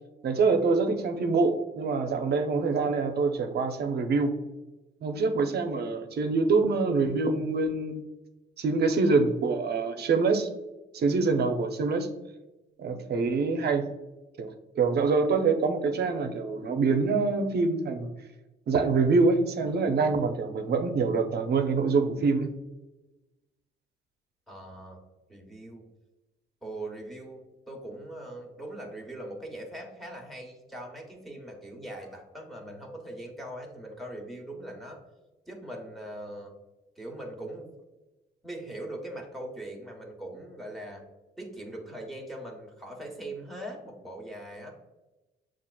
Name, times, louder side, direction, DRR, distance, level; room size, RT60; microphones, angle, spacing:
voice 1, 0.2-4.3 5.0-8.0 8.6-10.5 10.9-12.1 12.8-13.9 14.4-18.1 18.7-22.5, right 4 dB, 55° right, 6 dB, 0.6 m, -25 dB
voice 2, 24.5-25.0 25.3-25.8 26.6-27.4 27.7-35.0 35.5-36.5 37.0-37.7 38.4-41.0 41.4-44.7, right 1 dB, ahead, -1 dB, 1.0 m, -41 dB
7.2 x 2.4 x 2.3 m, 1.1 s
cardioid pair, 90°, 20 cm